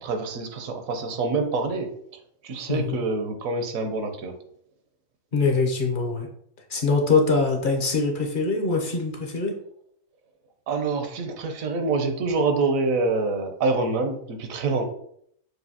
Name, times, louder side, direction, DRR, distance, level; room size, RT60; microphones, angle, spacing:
voice 1, 0.0-1.9 2.4-4.4 10.7-14.9, right 3 dB, 85° right, 5 dB, 1.1 m, -26 dB
voice 2, 2.7-3.0 5.3-6.3 6.7-9.5, left 4 dB, 50° left, 1 dB, 0.7 m, -23 dB
6.3 x 2.6 x 2.8 m, 0.68 s
omnidirectional pair, 1.4 m